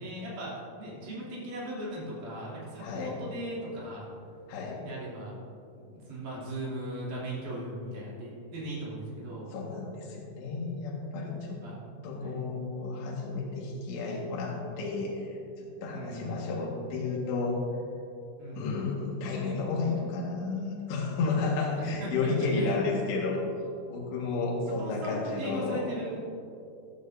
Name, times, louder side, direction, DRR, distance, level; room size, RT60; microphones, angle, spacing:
voice 1, 0.0-4.1 4.8-5.3 5.8-9.5 11.6-11.8 12.2-12.5 15.9-16.5 18.4-18.8 21.8-22.8 24.8-26.2, right 1 dB, 45° right, -6 dB, 3.9 m, -38 dB
voice 2, 2.8-3.2 4.5-4.9 9.5-11.6 12.0-15.4 15.8-17.6 18.6-23.4 23.9-25.9, left 3 dB, 65° left, -4 dB, 3.5 m, -32 dB
16.0 x 12.5 x 2.7 m, 2.6 s
omnidirectional pair, 5.8 m